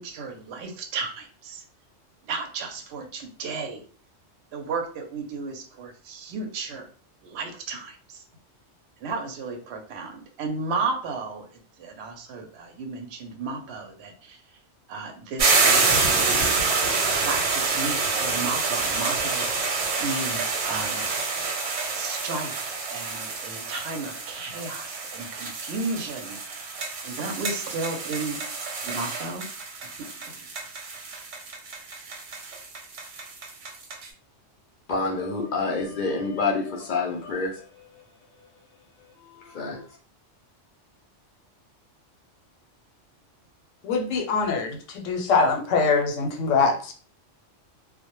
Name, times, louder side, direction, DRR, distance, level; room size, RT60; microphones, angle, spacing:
voice 1, 0.0-1.6 2.3-3.8 4.5-6.9 7.2-8.2 9.0-11.5 11.8-14.4 14.9-16.5 17.2-21.1 21.9-28.4 28.8-29.5 30.0-30.1, right 4 dB, 65° right, 0.8 m, -34 dB
sound 1, 15.4-34.1, right 4 dB, 90° right, 1.0 m, -27 dB
voice 2, 34.9-38.1 38.4-38.5 39.0-39.9, left 3 dB, 60° left, 0.5 m, -28 dB
voice 3, 43.8-46.9, left 4 dB, 90° left, 0.9 m, -23 dB
2.1 x 2.1 x 2.9 m
omnidirectional pair, 1.2 m